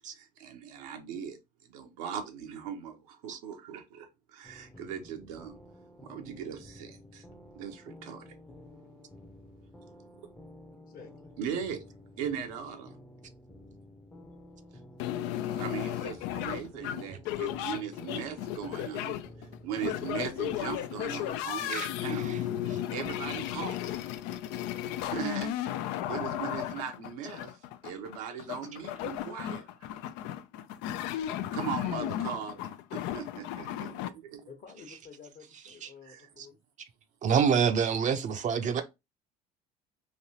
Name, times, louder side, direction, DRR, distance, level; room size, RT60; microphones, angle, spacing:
voice 1, 0.1-1.4 1.7-5.6 6.0-7.2 7.5-8.3 11.4-11.8 12.2-12.9 15.5-19.2 19.6-22.4 22.9-24.0 25.0-25.5 26.1-27.5 27.8-29.7 31.1-31.2 31.5-34.5 36.0-36.3 38.7-38.8, right 8 dB, 80° right, 0.8 m, -39 dB
sound 1, 4.4-23.6, left 1 dB, 10° left, 0.6 m, -52 dB
voice 2, 10.8-11.3 34.4-36.6, left 6 dB, 50° left, 1.1 m, -51 dB
sound 2, 15.0-34.1, left 12 dB, 70° left, 0.4 m, -35 dB
voice 3, 21.6-22.8 35.7-35.9 36.4-36.5 36.8-36.9 37.2-38.8, right 7 dB, 40° right, 0.6 m, -28 dB
3.2 x 2.7 x 2.8 m
hypercardioid pair, 75°, 19 cm